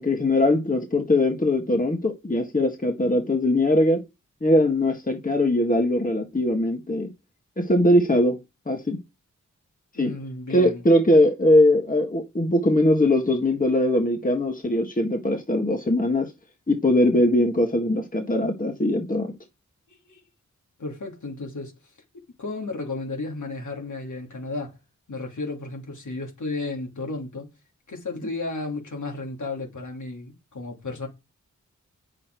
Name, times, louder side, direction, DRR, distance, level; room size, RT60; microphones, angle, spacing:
voice 1, 0.0-4.0 4.4-7.1 7.6-8.4 8.7-9.0 10.0-10.1 10.5-16.3 16.7-19.3, left 1 dB, 25° left, 1.7 m, -21 dB
voice 2, 9.9-10.8 19.9-20.2 20.8-21.7 22.4-24.8 25.1-27.5 27.9-31.1, left 3 dB, 75° left, 2.9 m, -33 dB
8.5 x 6.5 x 4.7 m
cardioid pair, 55°, 30 cm